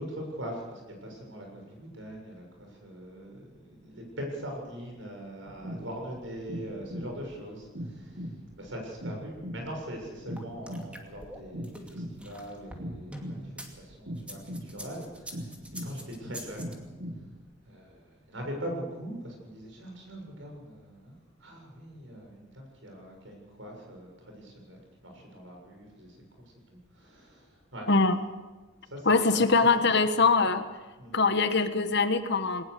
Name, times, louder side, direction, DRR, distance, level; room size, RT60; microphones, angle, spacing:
voice 1, 0.0-8.3 8.6-15.6 15.8-16.8 17.7-21.1 21.4-26.2 26.7-27.9 28.8-29.4 31.0-31.2, equal, 75° right, 2 dB, 7.2 m, -42 dB
sound 1, 5.5-17.4, equal, 60° right, 2.1 m, -41 dB
sound 2, 10.4-13.7 14.2-16.7, right 1 dB, 5° right, 2.5 m, -44 dB
voice 2, 29.0-30.6 31.1-32.6, left 4 dB, 60° left, 9 dB, 1.4 m, -23 dB
20.5 x 19.5 x 6.8 m, 1.2 s
head